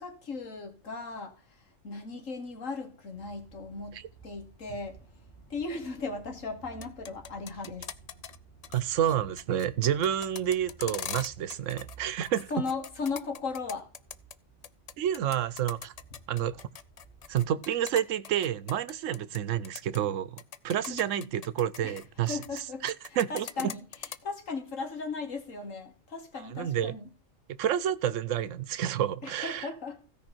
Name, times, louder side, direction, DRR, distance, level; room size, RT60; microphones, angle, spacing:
voice 1, 0.0-4.0 4.2-5.0 5.5-7.9 12.5-13.9 20.9-21.3 21.8-22.0 22.3-22.8 23.3-23.8 24.2-27.1 29.2-30.0, left 4 dB, 85° left, 2.2 m, -37 dB
sound 1, 3.1-17.5, right 5 dB, 10° left, 5.8 m, -55 dB
sound 2, 6.7-8.4 8.6-8.8 9.1-12.0 12.2-14.3 14.6-19.4 19.6-20.0 20.4-22.6 22.9-24.2, left 7 dB, 60° left, 0.4 m, -41 dB
voice 2, 8.7-12.5 15.0-15.9 16.3-16.6 17.3-22.4 22.8-23.7 26.5-26.9 27.6-29.7, right 10 dB, 80° right, 1.0 m, -29 dB
16.0 x 5.4 x 4.5 m
omnidirectional pair, 1.3 m